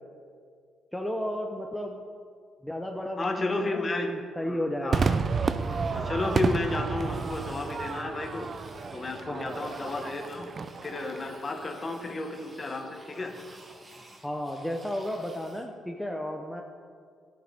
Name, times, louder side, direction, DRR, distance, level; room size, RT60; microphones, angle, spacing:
voice 1, 0.9-2.1 2.6-5.0 9.3-9.6 14.2-16.6, equal, 5° left, 2 dB, 0.7 m, -33 dB
voice 2, 3.2-4.1 4.4-5.2 5.9-8.5 8.9-10.5 10.8-13.4, left 2 dB, 30° left, 4 dB, 1.2 m, -32 dB
Crowd / Fireworks, 4.9-11.5, right 5 dB, 45° right, 0.4 m, -31 dB
sound 1, 5.4-15.7, right 2 dB, 25° right, 1.4 m, -51 dB
13.0 x 7.9 x 3.5 m, 2.1 s
cardioid pair, 90°, 0 cm